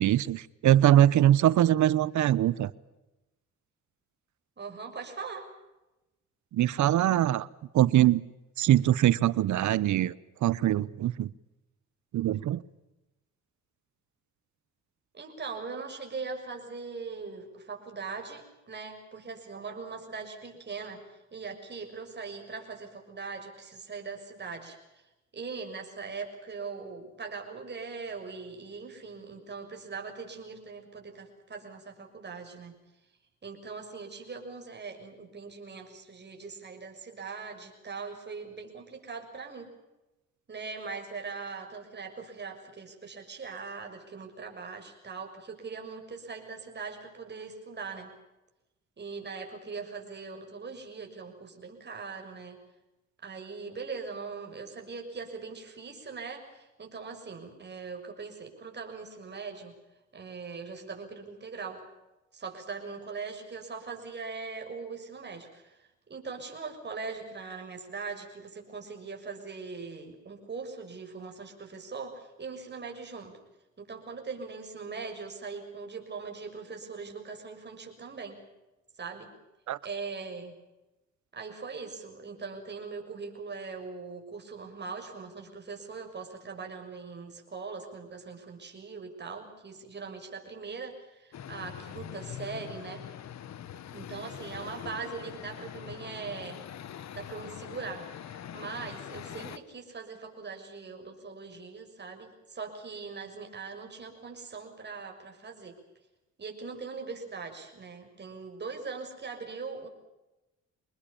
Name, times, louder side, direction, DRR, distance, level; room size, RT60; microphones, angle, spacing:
voice 1, 0.0-2.7 6.5-7.5 7.7-8.2 8.6-10.1 10.4-11.3 12.1-12.6 79.7-79.8, right 12 dB, 70° right, 20 dB, 1.0 m, -23 dB
voice 2, 4.6-5.5 15.1-21.0 21.3-24.8 25.3-32.7 33.4-39.7 40.5-48.1 49.0-52.6 53.2-59.7 60.1-61.8 62.3-65.8 66.1-73.4 73.8-78.4 79.0-79.3 79.8-80.5 81.3-93.0 93.9-96.6 96.9-105.7 106.4-109.9, right 4 dB, 35° right, 3 dB, 6.7 m, -41 dB
sound 1, 91.3-99.6, left 10 dB, 65° left, 1.3 m, -43 dB
26.5 x 20.5 x 7.1 m, 1.0 s
cardioid pair, 90°, 30 cm